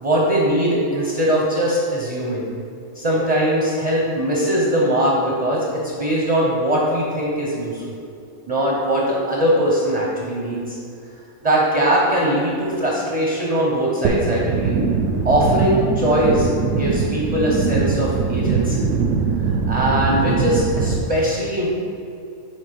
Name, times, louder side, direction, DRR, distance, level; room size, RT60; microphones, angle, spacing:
voice 1, 0.0-2.4 2.9-8.0 8.5-10.8 11.4-14.7 15.2-16.5 16.8-18.9 19.7-21.7, right 1 dB, 35° right, -4 dB, 0.6 m, -20 dB
sound 1, 14.0-21.0, right 5 dB, 70° right, 0.9 m, -21 dB
6.4 x 3.4 x 5.1 m, 2.4 s
omnidirectional pair, 1.5 m